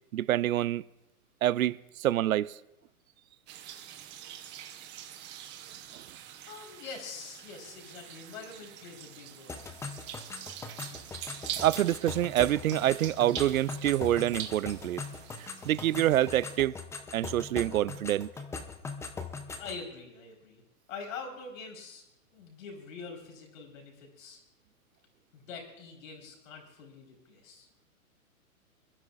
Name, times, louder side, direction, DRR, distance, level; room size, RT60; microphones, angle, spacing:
voice 1, 0.1-0.8 1.4-2.5 11.6-15.0 15.4-16.7 17.1-18.3, right 13 dB, 70° right, 0.6 m, -27 dB
sound 1, 3.5-16.6, right 10 dB, 25° right, 1.0 m, -44 dB
voice 2, 6.5-9.6 19.6-20.6 20.9-22.0 22.3-24.4 25.3-27.7, left 4 dB, 60° left, 4.3 m, -44 dB
sound 2, 9.5-19.8, left 4 dB, 5° left, 0.6 m, -41 dB
27.0 x 11.5 x 2.5 m
hypercardioid pair, 125°, 44 cm